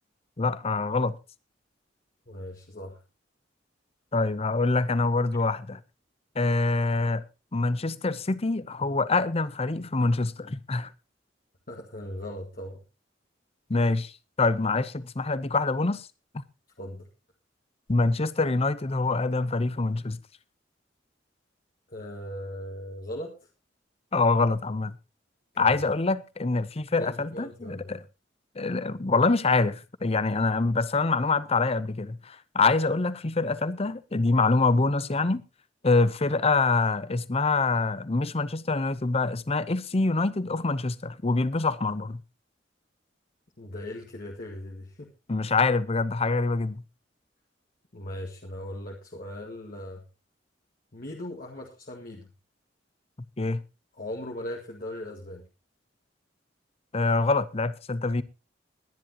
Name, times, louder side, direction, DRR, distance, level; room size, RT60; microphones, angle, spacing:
voice 1, 0.4-1.2 4.1-5.8 6.4-7.2 7.5-10.9 13.7-14.1 14.4-16.1 17.9-20.2 24.1-24.9 25.6-28.0 28.6-35.4 35.8-42.2 45.3-46.8 53.4-53.6 56.9-58.2, left 3 dB, 35° left, 0.7 m, -25 dB
voice 2, 2.3-3.0 11.7-12.8 16.8-17.1 21.9-23.3 25.6-25.7 27.0-28.0 43.6-45.1 47.9-50.0 50.9-52.3 54.0-55.5, left 1 dB, 50° left, 1.9 m, -38 dB
21.0 x 10.5 x 2.9 m
head